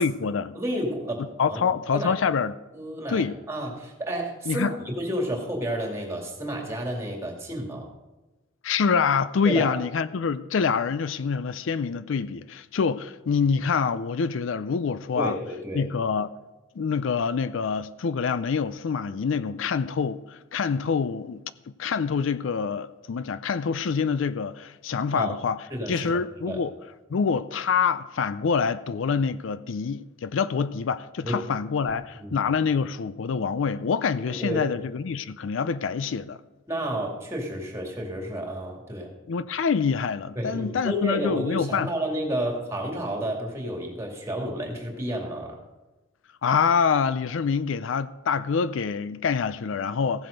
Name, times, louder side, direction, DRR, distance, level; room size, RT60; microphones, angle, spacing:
voice 1, 0.0-0.6 1.4-2.5 3.1-3.3 4.5-4.7 8.6-15.4 15.7-16.3 16.8-21.4 21.8-25.6 25.9-26.7 27.1-36.4 39.3-41.9 46.4-50.3, left 6 dB, 70° left, 0.4 m, -26 dB
voice 2, 0.6-1.2 1.5-1.6 1.9-2.1 2.7-7.9 9.4-9.8 15.2-15.9 25.1-25.3 25.7-26.1 26.4-26.6 31.2-31.4 32.2-32.4 34.3-34.7 36.7-39.1 40.4-45.6, equal, 15° right, 2.3 m, -31 dB
15.5 x 7.7 x 5.2 m
head